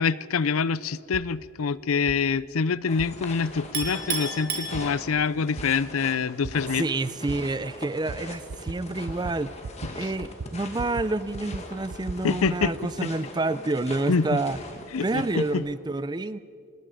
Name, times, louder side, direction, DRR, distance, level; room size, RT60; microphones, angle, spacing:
voice 1, 0.0-6.8 10.0-10.1 12.2-12.7 13.0-13.1 14.1-14.4 14.9-15.6, left 5 dB, 70° left, 19 dB, 0.5 m, -26 dB
sound 1, 1.1-1.3 2.1-2.2 3.0-3.1 3.8-3.9 4.7-4.9 5.6-5.7 6.4-6.6 7.3-7.4 8.1-8.2 8.5-8.8 9.1-9.4 9.6-9.9 10.2-11.1 11.3-12.7, right 4 dB, 80° right, 0.7 m, -36 dB
sound 2, 2.9-15.5, left 2 dB, 30° left, 2.0 m, -42 dB
Chink clink, 3.7-5.4, right 4 dB, 45° right, 3.4 m, -32 dB
voice 2, 6.6-9.5 9.9-14.6 15.0-16.4, right 2 dB, 20° right, 15 dB, 0.5 m, -28 dB
26.5 x 20.0 x 5.0 m, 2.5 s
head